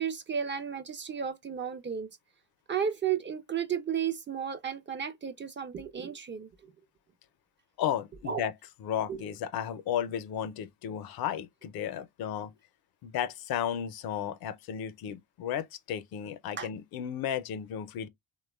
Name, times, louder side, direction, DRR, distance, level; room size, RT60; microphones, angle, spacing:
voice 1, 0.0-2.1 2.7-6.5 8.3-8.4 9.1-9.2 16.6-16.7, right 8 dB, 30° right, 0.4 m, -33 dB
voice 2, 7.8-8.5 8.8-12.5 13.0-18.1, left 9 dB, 70° left, 0.5 m, -34 dB
2.9 x 2.1 x 2.2 m
cardioid pair, 75°, 38 cm